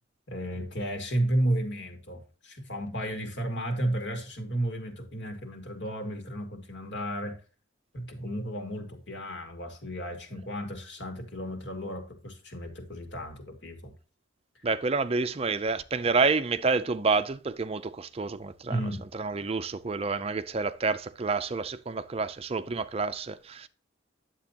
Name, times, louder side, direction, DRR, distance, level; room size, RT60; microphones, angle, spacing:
voice 1, 0.3-7.4 7.9-13.9 14.6-14.7 18.7-19.0, right 1 dB, 65° left, 2.4 m, -33 dB
voice 2, 14.6-18.8 19.1-23.7, right 4 dB, 30° right, 0.5 m, -28 dB
10.5 x 7.6 x 2.9 m
head